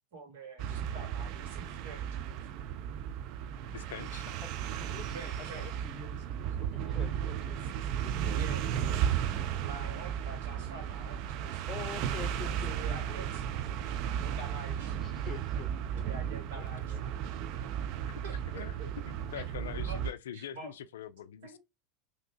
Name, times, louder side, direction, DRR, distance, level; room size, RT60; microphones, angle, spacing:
voice 1, 0.1-2.1 5.1-5.7 8.3-8.8 9.6-11.8 12.5-13.7 14.2-15.1 16.0-17.1 18.0-18.9 19.4-19.5 19.8-20.0 20.3-20.7 21.4-21.6, right 3 dB, 75° right, 1.6 m, -47 dB
sound 1, 0.6-20.1, right 9 dB, 55° right, 0.4 m, -35 dB
voice 2, 3.7-4.3 12.8-12.9 18.1-18.2 18.5-18.8 19.1-21.6, left 9 dB, 80° left, 0.3 m, -43 dB
voice 3, 4.8-7.6 8.0-8.4 11.7-13.3 15.0-16.6 16.9-17.0, left 6 dB, 35° left, 0.7 m, -47 dB
3.3 x 2.7 x 2.7 m
hypercardioid pair, 90°, 0 cm